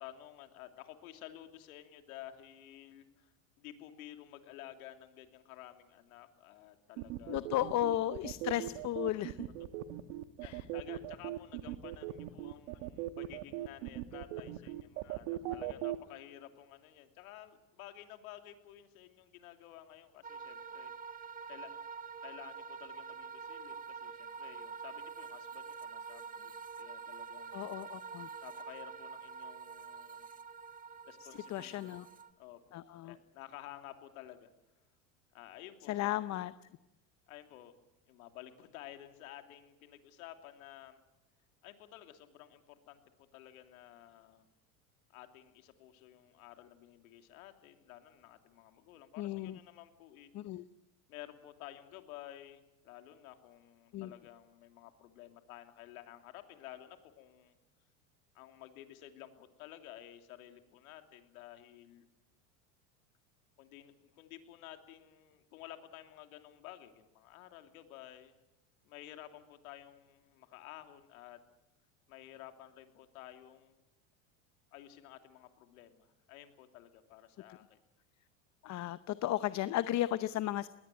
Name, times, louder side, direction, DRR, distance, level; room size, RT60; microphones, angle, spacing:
voice 1, 0.0-7.5 9.6-9.7 10.4-20.9 21.5-21.7 22.2-27.8 28.4-30.3 31.0-32.0 32.4-34.5 35.3-36.5 37.3-37.8 38.1-41.0 41.6-43.0 43.3-44.5 45.1-50.3 51.1-57.5 58.3-62.1 63.6-68.3 68.8-71.4 72.1-73.8 74.7-77.8, left 13 dB, 80° left, 7 dB, 3.0 m, -53 dB
sound 1, 7.0-16.0, right 15 dB, 70° right, 1.4 m, -39 dB
voice 2, 7.3-9.4 10.4-10.6 15.0-15.1 27.5-28.3 31.5-32.0 32.7-33.1 35.9-36.5 49.2-49.6 50.3-50.6 53.9-54.1 78.6-80.7, left 13 dB, 40° left, 15 dB, 0.8 m, -34 dB
sound 2, 20.2-32.3, right 5 dB, 20° right, 1.5 m, -46 dB
21.0 x 18.0 x 9.0 m, 1.0 s
supercardioid pair, 105°, 42 cm